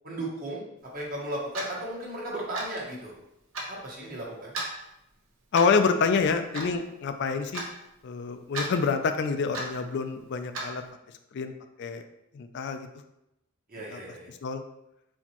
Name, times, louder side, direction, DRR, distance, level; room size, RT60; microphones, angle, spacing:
voice 1, 0.0-0.6 0.9-3.1 3.7-4.5 13.7-14.3, right 1 dB, 45° right, -3 dB, 1.3 m, -35 dB
Clock, 1.5-1.7 2.5-2.8 3.5-3.7 4.5-4.7 5.5-5.8 6.5-6.7 7.5-7.7 8.5-8.7 9.5-9.7 10.5-10.7, right 2 dB, 65° right, 0.9 m, -33 dB
voice 2, 5.5-7.6 8.0-10.8 11.3-11.5 11.8-12.0 12.3-12.9 13.9-14.0 14.4-14.6, left 5 dB, 55° left, 7 dB, 0.4 m, -27 dB
4.3 x 4.1 x 2.9 m, 0.86 s
head